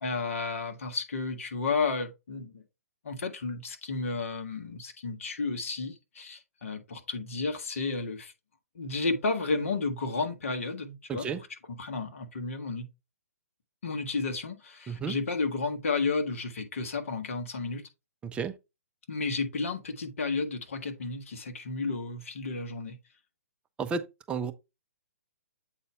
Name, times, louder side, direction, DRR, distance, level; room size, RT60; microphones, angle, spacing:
voice 1, 0.0-2.6 3.0-8.3 8.7-12.9 13.8-17.9 19.1-23.0, left 3 dB, 60° left, 1.5 m, -32 dB
voice 2, 11.1-11.4 14.9-15.2 18.3-18.6 23.8-24.5, right 5 dB, 15° right, 0.6 m, -32 dB
7.9 x 4.2 x 3.4 m
figure-of-eight pair, 125°, 8 cm